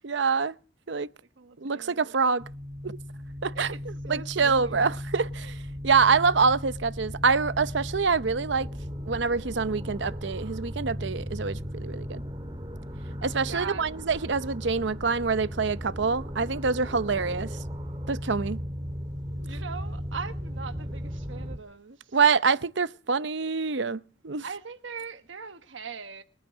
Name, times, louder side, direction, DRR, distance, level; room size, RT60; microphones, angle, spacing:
voice 1, 0.0-0.5 0.9-1.1 1.6-2.4 2.8-3.0 3.4-3.7 4.1-5.5 5.8-8.7 9.1-12.2 13.2-17.5 18.1-18.6 22.1-24.4, right 5 dB, 70° right, 0.7 m, -25 dB
voice 2, 1.4-2.1 3.5-5.0 13.4-14.0 19.3-22.2 24.4-26.2, right 5 dB, 90° right, 1.3 m, -40 dB
sound 1, 2.4-21.6, equal, 25° right, 2.0 m, -36 dB
21.5 x 9.1 x 7.4 m
head